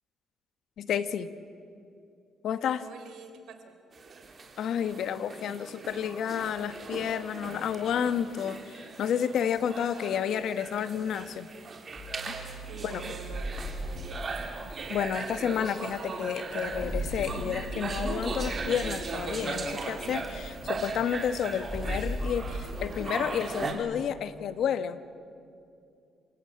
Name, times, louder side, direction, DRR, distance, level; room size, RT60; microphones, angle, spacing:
voice 1, 0.8-1.3 2.4-2.9 4.6-11.5 12.3-12.4 12.8-13.1 14.9-25.1, left 8 dB, 70° left, 13 dB, 1.1 m, -31 dB
voice 2, 2.8-3.7 12.7-14.3, right 6 dB, 75° right, 7 dB, 3.4 m, -47 dB
sound 1, 3.9-23.7, right 4 dB, 40° right, 3.1 m, -38 dB
sound 2, 12.0-22.8, equal, 10° left, 5.7 m, -38 dB
28.5 x 17.0 x 8.9 m, 2.5 s
cardioid pair, 90°, 0 cm